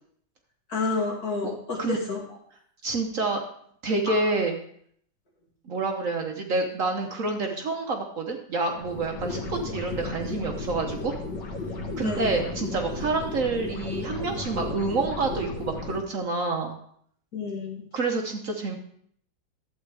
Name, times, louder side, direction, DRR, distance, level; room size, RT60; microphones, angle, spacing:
voice 1, 0.7-2.2 4.1-4.3 12.0-12.3 17.3-17.8, left 4 dB, 55° left, -2 dB, 2.6 m, -30 dB
voice 2, 2.8-3.4 3.8-4.6 5.7-11.1 12.0-16.8 17.9-18.8, right 3 dB, 55° right, 3 dB, 1.2 m, -28 dB
sound 1, 8.7-16.0, left 3 dB, 80° left, 2.0 m, -34 dB
11.5 x 8.1 x 3.4 m, 0.64 s
omnidirectional pair, 1.9 m